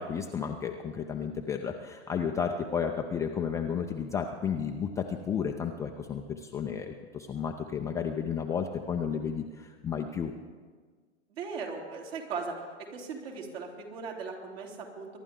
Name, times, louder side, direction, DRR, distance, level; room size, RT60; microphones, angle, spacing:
voice 1, 0.0-10.3, left 7 dB, 10° left, 2 dB, 0.4 m, -32 dB
voice 2, 11.3-12.5 12.9-15.2, right 5 dB, 60° right, 0 dB, 3.3 m, -38 dB
23.0 x 11.5 x 3.7 m, 1.5 s
hypercardioid pair, 120°, 35 cm